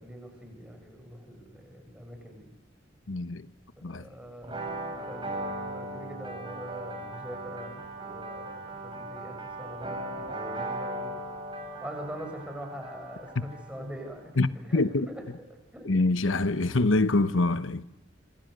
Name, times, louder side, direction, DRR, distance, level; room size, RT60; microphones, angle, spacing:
voice 1, 0.0-2.5 3.8-11.2 11.8-15.2 15.7-15.9, equal, 5° right, 7.2 m, -43 dB
voice 2, 3.1-3.5 3.8-4.1 13.4-13.5 14.4-15.1 15.9-17.8, left 2 dB, 80° left, 1.0 m, -25 dB
sound 1, 4.4-14.0, right 1 dB, 25° right, 5.6 m, -38 dB
27.0 x 26.0 x 6.7 m
head